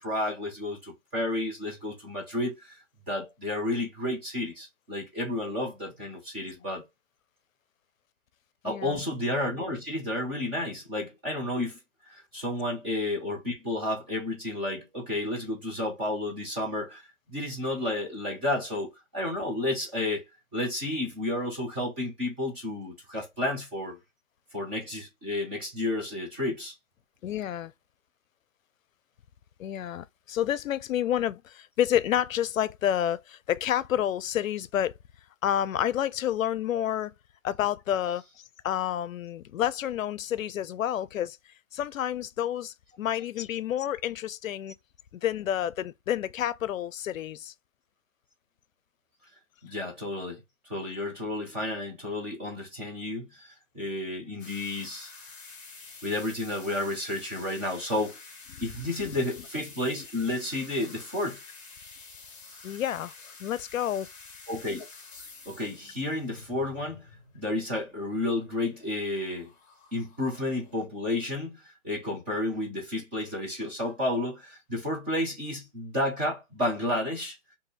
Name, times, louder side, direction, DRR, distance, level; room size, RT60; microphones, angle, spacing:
voice 1, 0.0-2.7 3.1-6.8 8.6-11.8 12.1-17.0 17.3-20.2 20.5-24.0 24.5-26.7 49.6-50.4 50.7-55.1 56.0-58.2 58.6-61.4 64.5-64.8 65.5-67.1 67.3-69.5 69.9-77.4, left 1 dB, 10° right, 0.4 m, -31 dB
voice 2, 8.6-9.0 27.2-27.7 29.6-34.9 35.4-37.1 37.4-41.4 41.7-44.7 45.1-47.5 58.5-58.7 59.0-59.1 62.6-64.1, left 11 dB, 90° left, 0.5 m, -29 dB
sound 1, 54.4-70.9, left 4 dB, 20° left, 1.5 m, -49 dB
2.7 x 2.6 x 3.9 m
hypercardioid pair, 145°, 39 cm